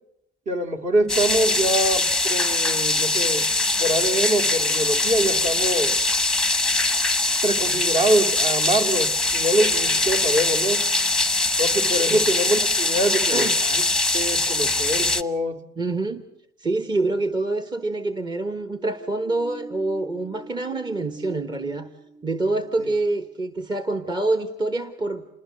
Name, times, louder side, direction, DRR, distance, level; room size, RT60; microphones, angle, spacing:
voice 1, 0.5-3.5 3.8-6.0 7.4-10.9 11.6-13.8 14.1-15.6 22.8-22.9, right 1 dB, 45° right, 6 dB, 2.2 m, -24 dB
sound 1, 1.1-15.2, left 2 dB, 5° left, 0.9 m, -22 dB
voice 2, 13.2-13.6 15.8-16.2 16.6-21.9 22.2-25.3, right 2 dB, 25° right, 8 dB, 1.2 m, -26 dB
sound 2, 18.6-23.3, right 2 dB, 75° right, 5.6 m, -43 dB
27.5 x 20.0 x 7.7 m, 0.83 s
cardioid pair, 110°, 17 cm